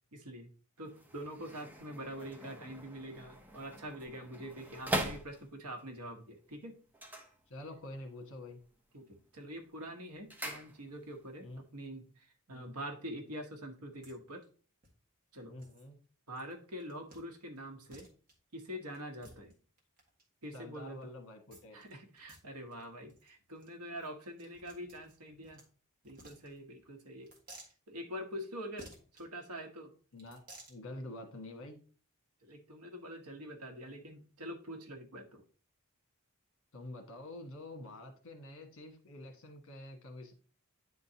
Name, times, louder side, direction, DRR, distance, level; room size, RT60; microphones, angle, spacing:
voice 1, 0.1-0.5 0.8-6.8 8.9-14.4 15.3-15.5 16.3-18.1 18.5-19.5 20.4-21.0 21.7-25.6 26.0-27.3 27.9-29.9 32.4-35.4, equal, 80° right, 5 dB, 1.2 m, -45 dB
sound 1, 0.8-5.8 6.9-8.0 8.3-8.8 9.2-11.2 11.5-11.6, right 1 dB, 10° right, 0.8 m, -42 dB
voice 2, 7.5-8.6 11.4-11.7 12.5-12.8 15.4-16.0 20.5-21.8 30.1-30.4 30.7-31.8 36.7-40.3, left 1 dB, 60° left, 4 dB, 1.5 m, -47 dB
sound 2, 14.0-14.1 14.4-14.5 14.8-14.9 15.6-15.9 16.3-16.5 16.8-17.2 17.6-17.7 17.9-18.3 18.9-20.2 21.5-21.9 22.2-22.4 22.7-22.8 23.1-23.3 23.6-23.7 24.0-25.7 26.0-26.8 27.2-27.7 28.8-29.2 30.1-30.8, right 2 dB, 40° right, 1.6 m, -55 dB
9.6 x 3.8 x 2.8 m, 0.39 s
head